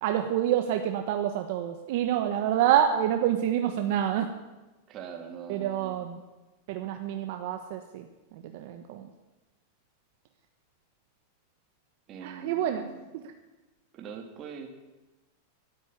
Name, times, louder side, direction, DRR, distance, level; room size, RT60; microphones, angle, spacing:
voice 1, 0.0-4.3 5.5-6.2 6.7-8.1 8.3-9.1 12.2-12.9 13.1-13.2, right 10 dB, 55° right, 6 dB, 1.2 m, -27 dB
voice 2, 4.9-6.1 12.1-13.1 13.9-14.7, right 6 dB, 30° right, 4 dB, 2.4 m, -43 dB
12.0 x 11.5 x 9.7 m, 1.1 s
supercardioid pair, 155°, 0 cm